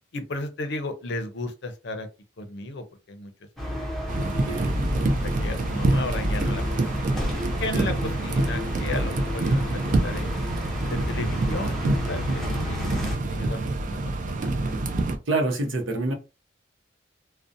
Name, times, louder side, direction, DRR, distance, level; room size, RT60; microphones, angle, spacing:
voice 1, 0.1-2.1 2.4-3.3 5.2-7.0 7.6-10.3 10.8-13.0 13.3-14.8, left 2 dB, 60° left, 0.5 m, -34 dB
sound 1, 3.6-13.2, left 1 dB, ahead, 0.6 m, -31 dB
sound 2, 4.1-15.2, right 2 dB, 40° right, 0.4 m, -27 dB
voice 2, 4.2-4.8 15.3-16.1, right 2 dB, 80° right, 0.7 m, -27 dB
2.6 x 2.1 x 2.5 m
head